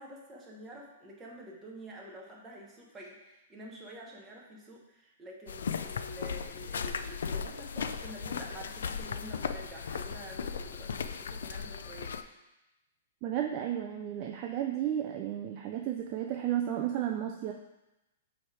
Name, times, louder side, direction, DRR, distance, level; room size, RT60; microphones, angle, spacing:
voice 1, 0.0-12.2, right 1 dB, 10° right, -2 dB, 0.8 m, -48 dB
sound 1, 5.5-12.2, left 6 dB, 80° left, 0.3 m, -37 dB
voice 2, 13.2-17.5, right 11 dB, 25° right, 3 dB, 0.3 m, -33 dB
7.0 x 3.2 x 4.7 m, 0.98 s
hypercardioid pair, 180°, 0 cm